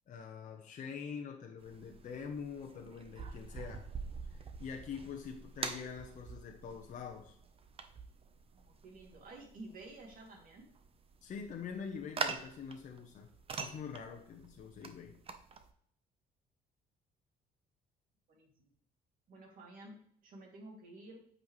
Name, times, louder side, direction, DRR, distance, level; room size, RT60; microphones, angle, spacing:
voice 1, 0.1-3.9 4.2-7.4 11.2-13.3 13.6-15.2, left 6 dB, 50° left, 2 dB, 0.9 m, -45 dB
sound 1, 1.6-15.7, right 5 dB, 35° right, 0.9 m, -45 dB
voice 2, 8.5-10.7 18.3-18.5 19.3-20.0 20.2-21.2, right 2 dB, 55° right, 0 dB, 2.6 m, -52 dB
8.6 x 5.5 x 3.2 m, 0.65 s
cardioid pair, 110°, 17 cm